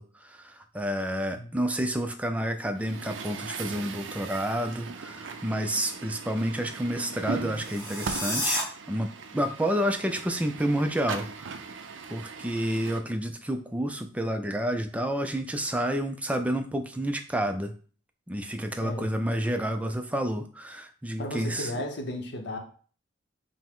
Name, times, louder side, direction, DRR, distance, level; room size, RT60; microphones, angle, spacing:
voice 1, 0.0-8.6 8.9-11.6 12.1-17.7 18.3-21.7, equal, 5° right, 6 dB, 0.3 m, -29 dB
Truck, 2.8-13.0, right 5 dB, 75° right, 0.4 m, -39 dB
sound 1, 7.5-8.6, left 1 dB, 10° left, 1.0 m, -30 dB
voice 2, 18.8-19.2 21.2-22.6, left 1 dB, 60° left, 3 dB, 0.9 m, -34 dB
5.5 x 2.1 x 3.6 m, 0.42 s
head